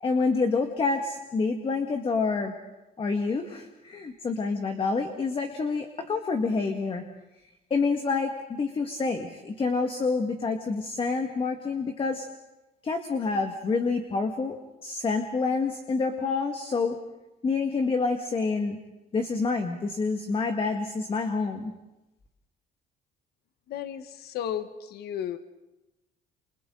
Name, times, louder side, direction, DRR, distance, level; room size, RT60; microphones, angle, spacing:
voice 1, 0.0-2.5 3.0-7.0 7.7-12.3 12.8-14.6 14.8-17.0 17.4-18.8 19.1-21.7, left 4 dB, 30° left, 4 dB, 1.8 m, -27 dB
voice 2, 23.7-25.4, left 9 dB, 70° left, 10 dB, 1.2 m, -34 dB
29.0 x 28.5 x 3.9 m, 1.0 s
cardioid pair, 110°, 17 cm